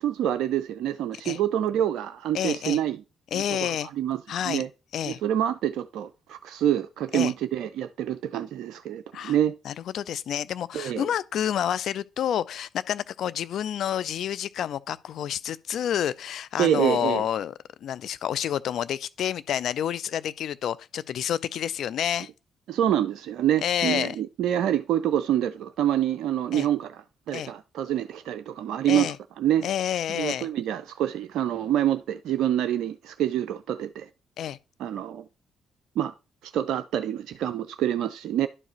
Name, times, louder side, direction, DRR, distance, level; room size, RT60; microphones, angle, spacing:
voice 1, 0.0-3.0 3.3-3.4 4.0-4.2 4.5-4.7 5.1-9.5 10.7-11.0 16.6-17.2 22.7-29.1 29.4-29.7 30.2-34.1 34.8-35.2 36.0-36.1 36.4-38.5, right 11 dB, 65° right, 0.3 m, -26 dB
voice 2, 2.3-2.8 3.3-3.9 4.3-4.6 4.9-5.2 7.1-7.3 9.1-9.4 9.6-22.3 23.6-24.2 26.5-26.7 27.3-27.5 28.8-29.2 29.6-30.5 34.4-34.6, left 10 dB, 60° left, 0.3 m, -29 dB
11.0 x 4.7 x 3.0 m
hypercardioid pair, 45°, 0 cm